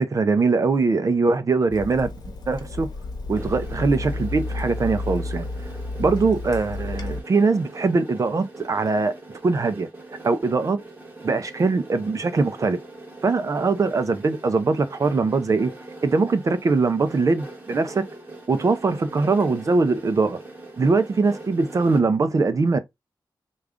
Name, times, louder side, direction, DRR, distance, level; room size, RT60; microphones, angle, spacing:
voice 1, 0.0-2.1 2.5-2.9 3.3-5.5 6.0-9.1 9.4-9.9 10.2-10.8 11.2-12.8 13.2-15.7 16.0-18.1 18.5-20.4 20.8-22.8, right 4 dB, 45° right, 0.5 m, -22 dB
Water tap faucet / Sink (filling or washing), 1.7-7.2, left 2 dB, 55° left, 1.0 m, -31 dB
sound 1, 3.3-22.0, right 2 dB, 25° right, 1.3 m, -42 dB
3.5 x 2.4 x 3.6 m
wide cardioid pair, 120°, 8 cm